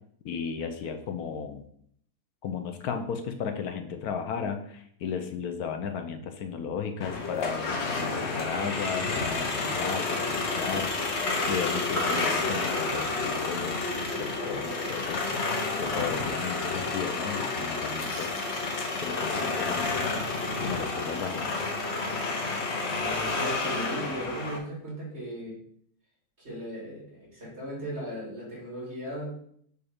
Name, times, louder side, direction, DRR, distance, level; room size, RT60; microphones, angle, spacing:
voice 1, 0.2-1.7 2.4-11.2 11.5-13.9 14.2-18.4 19.0-20.1 20.6-21.6, left 6 dB, 75° left, 6 dB, 1.1 m, -35 dB
sound 1, 7.0-24.6, left 3 dB, 50° left, 1.0 m, -30 dB
sound 2, 19.9-24.9, right 3 dB, 10° left, 1.0 m, -45 dB
voice 2, 23.0-25.6 26.4-29.4, right 1 dB, 40° right, -5 dB, 2.9 m, -37 dB
6.8 x 2.7 x 5.0 m, 0.66 s
omnidirectional pair, 1.7 m